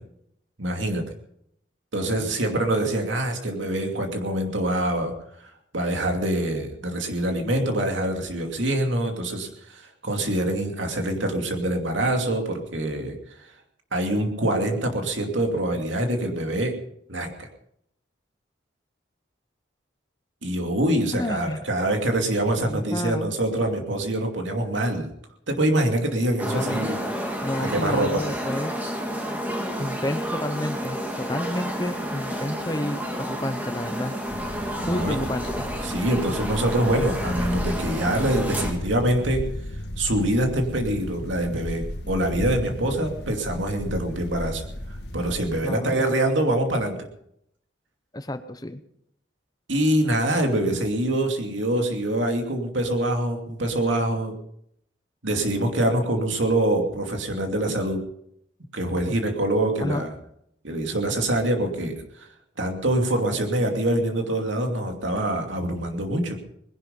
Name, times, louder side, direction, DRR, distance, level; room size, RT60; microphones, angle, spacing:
voice 1, 0.6-1.0 1.9-5.1 5.7-13.5 13.9-16.7 17.1-17.5 20.4-25.1 25.5-27.0 27.6-28.2 34.8-35.2 35.8-39.5 40.0-44.7 45.1-47.0 49.7-54.3 55.2-58.0 58.7-60.1 60.6-62.3 62.6-66.4, right 1 dB, 90° right, 3 dB, 2.6 m, -25 dB
voice 2, 21.1-21.6 22.6-23.3 26.4-26.9 27.4-28.8 29.8-34.1 34.9-35.6 45.6-45.9 48.1-48.8 59.8-60.1, left 1 dB, 20° left, 11 dB, 0.8 m, -30 dB
sound 1, 26.4-38.7, equal, 10° right, 2.1 m, -30 dB
sound 2, 34.3-45.6, left 1 dB, 60° left, 1.5 m, -34 dB
20.0 x 11.0 x 5.3 m, 0.74 s
head